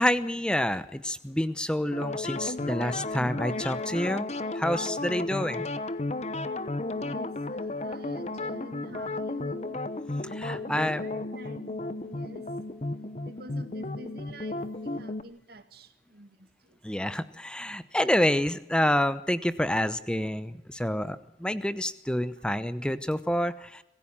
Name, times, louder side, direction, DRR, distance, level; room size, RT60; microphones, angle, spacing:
voice 1, 0.0-4.3 4.5-5.7 10.2-11.0 16.8-23.8, left 1 dB, 5° left, 13 dB, 0.8 m, -28 dB
sound 1, 1.9-15.2, left 2 dB, 35° left, 0.9 m, -33 dB
voice 2, 6.9-9.8 10.5-12.5 13.2-16.3 16.7-16.8, equal, 55° right, 9 dB, 2.1 m, -47 dB
25.5 x 15.5 x 7.3 m, 0.85 s
head